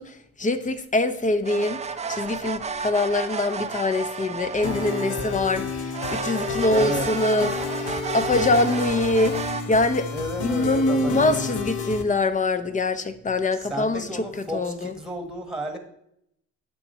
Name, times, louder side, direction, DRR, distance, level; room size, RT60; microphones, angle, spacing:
voice 1, 0.0-1.8 2.1-9.4 9.7-10.1 10.4-14.3 14.5-14.9, left 2 dB, 25° left, 11 dB, 0.7 m, -24 dB
sound 1, 1.4-5.6 5.9-9.6, right 5 dB, 20° right, 0.5 m, -32 dB
sound 2, 4.6-12.0, left 5 dB, 90° left, 1.0 m, -31 dB
voice 2, 6.7-7.1 10.1-11.5 13.6-15.8, equal, ahead, 6 dB, 1.4 m, -32 dB
8.5 x 6.0 x 4.3 m, 0.75 s
cardioid pair, 90°, 30 cm